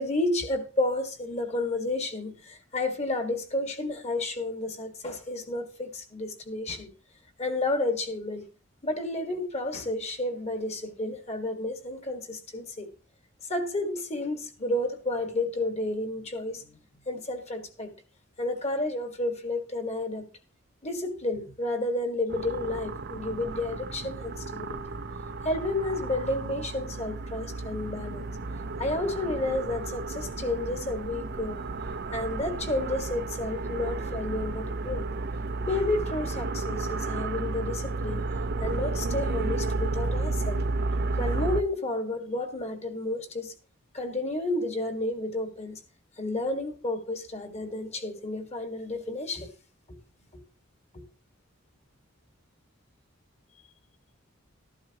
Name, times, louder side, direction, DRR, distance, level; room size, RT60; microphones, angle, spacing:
voice 1, 0.0-6.9 7.4-8.5 8.8-12.9 13.5-16.8 17.1-17.9 18.4-20.3 20.8-24.8 25.4-28.3 28.8-31.6 32.1-35.1 35.7-38.3 38.6-40.6 41.2-43.5 43.9-45.8 46.2-49.5 49.9-50.0 50.3-50.4 50.9-51.0, left 2 dB, 30° left, 1.7 m, -31 dB
sound 1, 22.3-41.6, right 3 dB, 50° right, 0.6 m, -32 dB
14.0 x 11.5 x 2.9 m
head